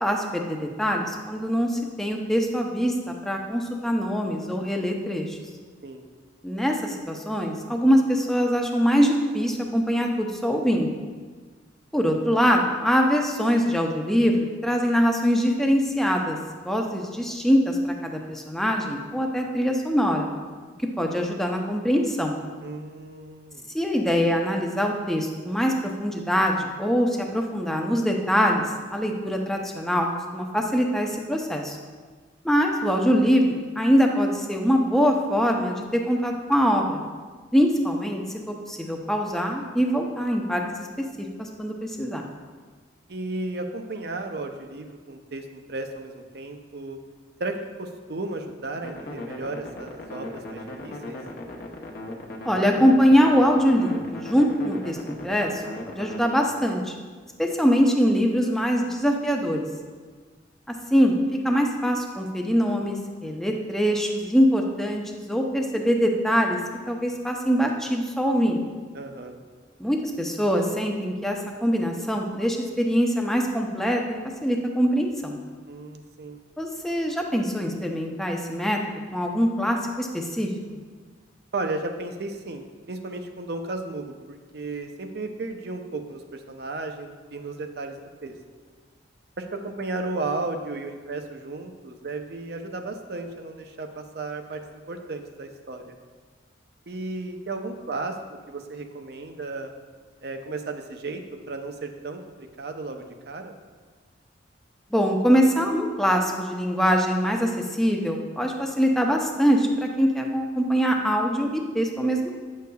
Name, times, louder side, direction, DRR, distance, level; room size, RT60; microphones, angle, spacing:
voice 1, 0.0-5.4 6.4-10.9 11.9-16.4 16.6-20.3 21.0-22.4 23.7-25.7 26.0-28.6 28.9-30.1 30.3-31.8 32.4-37.0 37.5-40.9 41.4-42.2 52.4-55.6 55.9-56.9 57.4-59.7 60.9-61.1 61.4-66.6 66.9-68.6 69.8-74.0 74.4-75.4 76.6-78.8 79.1-80.5 104.9-112.3, equal, ahead, 1 dB, 0.5 m, -23 dB
voice 2, 22.6-23.7 43.1-47.0 47.4-51.2 68.9-69.4 75.7-76.4 81.5-88.3 89.4-94.6 94.9-96.0 96.9-98.2 98.5-99.7 100.2-103.5, right 2 dB, 55° right, 5 dB, 0.6 m, -34 dB
sound 1, 48.8-56.2, left 1 dB, 50° left, 0.8 m, -38 dB
9.4 x 6.5 x 2.3 m, 1.5 s
head